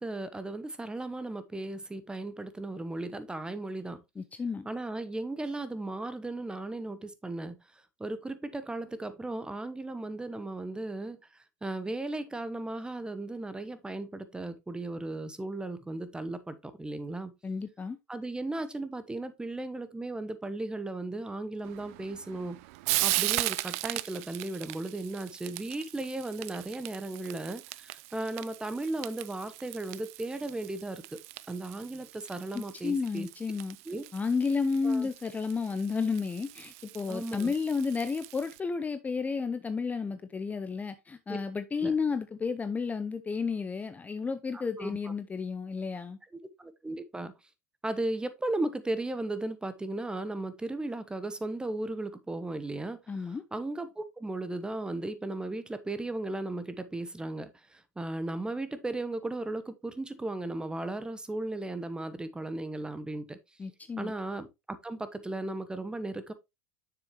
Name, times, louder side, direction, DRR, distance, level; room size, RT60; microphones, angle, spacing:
voice 1, 0.0-4.0 4.6-7.6 8.0-11.2 11.6-17.3 18.1-22.6 23.0-31.2 31.5-33.3 33.9-34.0 34.8-35.1 37.1-37.5 41.3-41.4 41.8-41.9 44.8-45.1 46.3-47.3 47.8-63.4 64.0-66.3, right 2 dB, 10° right, 1.0 m, -36 dB
voice 2, 4.2-4.7 17.4-18.0 32.5-33.8 34.1-46.2 53.1-53.4 63.6-64.1, left 5 dB, 20° left, 0.7 m, -32 dB
Frying (food), 21.6-38.6, right 20 dB, 60° right, 0.4 m, -38 dB
7.0 x 6.8 x 3.0 m
hypercardioid pair, 80°, 9 cm